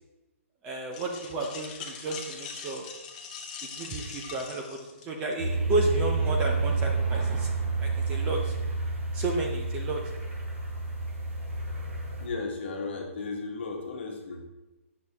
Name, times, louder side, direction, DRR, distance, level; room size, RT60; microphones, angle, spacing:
voice 1, 0.6-2.9 3.6-7.5 7.8-8.5 9.1-10.0, right 2 dB, 15° right, 1 dB, 0.5 m, -32 dB
sound 1, 0.9-5.3, left 6 dB, 30° left, 0.8 m, -42 dB
sound 2, 5.4-12.3, right 3 dB, 60° right, 2.6 m, -29 dB
voice 2, 12.2-14.4, left 3 dB, 50° left, 1 dB, 1.4 m, -35 dB
8.6 x 6.3 x 2.8 m, 1.0 s
hypercardioid pair, 170°, 8 cm